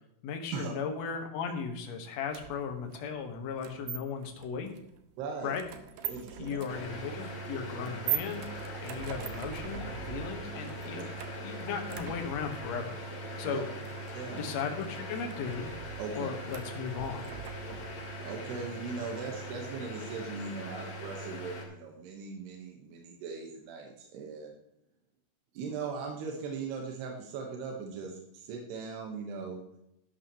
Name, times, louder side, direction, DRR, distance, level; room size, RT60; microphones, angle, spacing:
voice 1, 0.2-4.7 5.4-5.7 6.4-8.4 8.8-11.1 11.4-13.0 13.4-13.7 14.4-15.7 16.1-17.3, left 6 dB, 60° left, 4 dB, 2.0 m, -36 dB
sound 1, 2.3-18.1, right 11 dB, 70° right, 2.1 m, -42 dB
voice 2, 5.2-5.5 6.1-6.6 10.9-11.0 13.5-13.6 14.1-14.4 16.0-16.3 18.2-24.5 25.5-29.6, right 5 dB, 90° right, 1 dB, 3.3 m, -39 dB
sound 2, 6.7-21.6, equal, 45° left, 2.8 m, -41 dB
12.0 x 12.0 x 3.0 m, 0.80 s
omnidirectional pair, 4.6 m